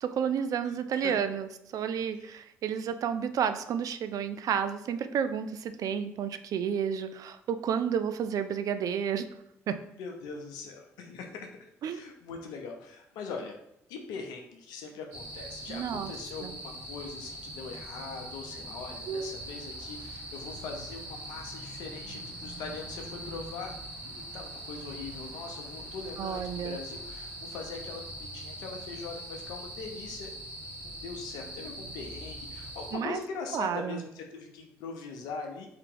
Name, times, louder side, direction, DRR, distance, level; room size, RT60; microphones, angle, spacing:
voice 1, 0.0-9.3 9.7-9.8 11.8-12.0 15.7-16.1 16.4-16.5 19.1-19.3 26.2-26.8 32.9-33.2 33.5-34.0, right 8 dB, 55° right, 10 dB, 0.3 m, -31 dB
voice 2, 0.6-1.2 2.1-2.4 10.0-13.5 13.9-23.7 24.0-30.3 30.8-35.7, left 4 dB, 70° left, 3 dB, 0.6 m, -41 dB
sound 1, 15.1-32.9, right 1 dB, 80° right, 0.9 m, -42 dB
3.6 x 2.8 x 3.7 m, 0.79 s
hypercardioid pair, 55°, 7 cm